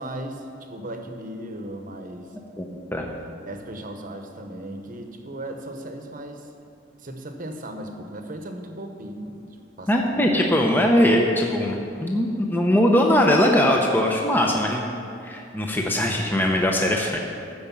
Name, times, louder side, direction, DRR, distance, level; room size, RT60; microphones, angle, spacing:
voice 1, 0.0-2.3 3.2-6.5 7.0-9.5 9.8-10.3, right 1 dB, 45° right, 5 dB, 1.0 m, -37 dB
voice 2, 9.9-17.2, left 1 dB, 10° left, 0 dB, 0.7 m, -21 dB
14.0 x 5.1 x 7.1 m, 2.5 s
head